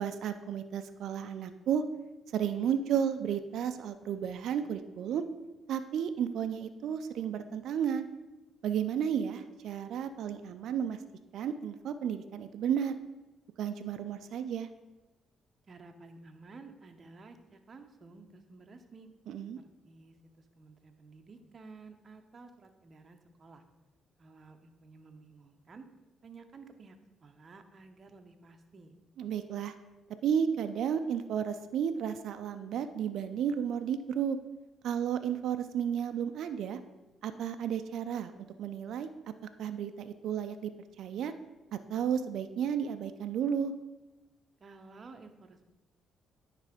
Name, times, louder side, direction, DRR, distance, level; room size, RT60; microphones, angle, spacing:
voice 1, 0.0-1.8 2.3-5.2 5.7-8.1 8.6-11.0 11.3-12.9 13.6-14.7 19.3-19.6 29.2-29.7 30.2-34.4 34.8-36.8 37.2-38.3 38.6-39.1 39.6-40.7 41.0-41.3 41.7-43.7, right 8 dB, 75° right, 9 dB, 0.4 m, -32 dB
voice 2, 15.7-19.1 19.6-23.6 24.2-25.9 26.2-27.0 27.2-28.9 44.6-45.7, right 3 dB, 40° right, 5 dB, 0.7 m, -53 dB
9.6 x 3.3 x 5.0 m, 1.1 s
cardioid pair, 90°, 0 cm